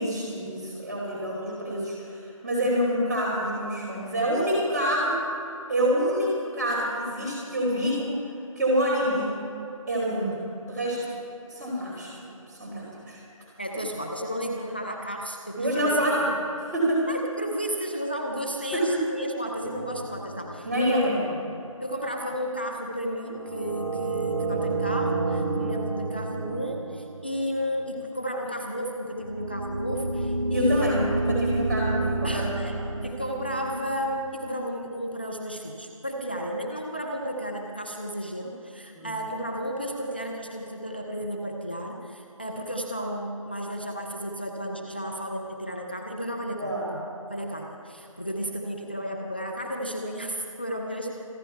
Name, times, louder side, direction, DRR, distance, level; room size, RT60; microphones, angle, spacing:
voice 1, 0.0-2.2 2.4-5.2 5.7-8.1 8.5-9.3 9.9-11.1 11.5-12.1 12.5-13.2 15.5-16.3 16.6-17.1 18.7-19.0 20.6-21.3 30.5-33.0 38.9-39.1 46.6-46.9, equal, 5° right, -10 dB, 2.8 m, -27 dB
voice 2, 13.6-15.9 17.1-21.1 21.8-31.0 32.2-32.8 33.0-47.0 47.3-51.3, equal, 20° left, 1 dB, 0.5 m, -33 dB
sound 1, 19.6-21.1 23.3-27.8 29.2-34.2, right 2 dB, 45° right, 3.7 m, -30 dB
27.0 x 10.0 x 4.5 m, 2.8 s
figure-of-eight pair, 175°, 18 cm